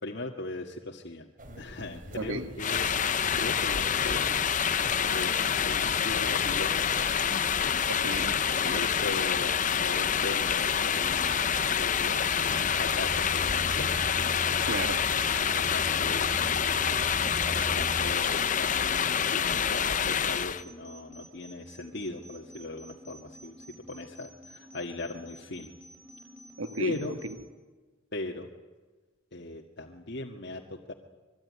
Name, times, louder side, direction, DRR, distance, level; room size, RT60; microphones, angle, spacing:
voice 1, 0.0-1.3 1.6-2.9 3.3-4.3 5.1-7.1 7.7-7.9 8.7-14.6 15.3-17.1 17.7-25.7 26.8-27.1 28.1-28.5 29.3-30.9, left 2 dB, 55° left, 1.9 m, -39 dB
sound 1, 1.4-18.1, right 1 dB, 40° right, 3.4 m, -42 dB
voice 2, 2.2-2.5 7.9-8.8 14.7-15.0 26.6-27.3, right 2 dB, 80° right, 2.0 m, -35 dB
sound 2, 2.6-20.6, left 7 dB, 40° left, 0.8 m, -27 dB
sound 3, 16.4-27.4, right 1 dB, 10° right, 7.9 m, -51 dB
25.5 x 23.5 x 9.7 m
head